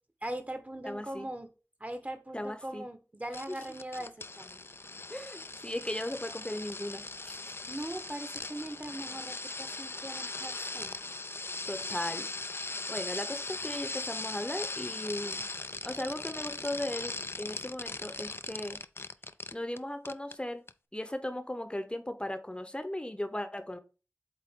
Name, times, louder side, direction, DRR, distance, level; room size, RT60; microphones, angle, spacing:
voice 1, 0.2-1.5 1.8-4.6 7.7-10.9, right 1 dB, 30° right, 8 dB, 1.1 m, -40 dB
voice 2, 0.8-1.3 2.3-2.8 3.5-3.6 5.1-7.4 11.7-12.3 12.9-15.5 15.8-18.8 19.5-20.6 20.9-23.8, left 1 dB, 20° left, 9 dB, 0.8 m, -37 dB
sound 1, 3.3-19.8 20.1-20.4 20.7-20.8, left 3 dB, 50° left, 0.4 m, -39 dB
7.7 x 3.8 x 3.6 m, 0.34 s
wide cardioid pair, 50°, 5 cm